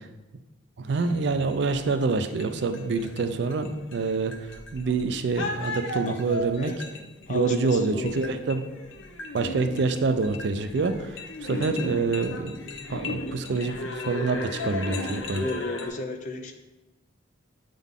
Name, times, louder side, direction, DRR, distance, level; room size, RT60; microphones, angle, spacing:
voice 1, 0.8-4.3 4.7-6.7 7.3-8.6 9.3-12.6 12.9-15.5, right 4 dB, 60° right, 9 dB, 0.4 m, -26 dB
sound 1, 0.9-15.9, left 2 dB, 75° left, 0.7 m, -36 dB
voice 2, 7.3-8.2 15.3-16.5, left 3 dB, 40° left, 4 dB, 0.6 m, -33 dB
8.2 x 3.8 x 3.6 m, 1.1 s
head